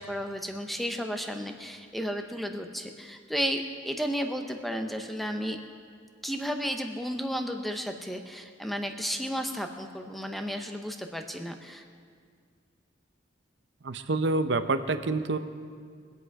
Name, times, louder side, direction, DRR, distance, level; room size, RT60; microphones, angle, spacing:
voice 1, 0.0-5.6 6.2-11.8, equal, ahead, 5 dB, 0.8 m, -33 dB
voice 2, 13.8-15.4, right 3 dB, 65° right, 9 dB, 0.7 m, -27 dB
23.5 x 8.3 x 4.8 m, 2.1 s
head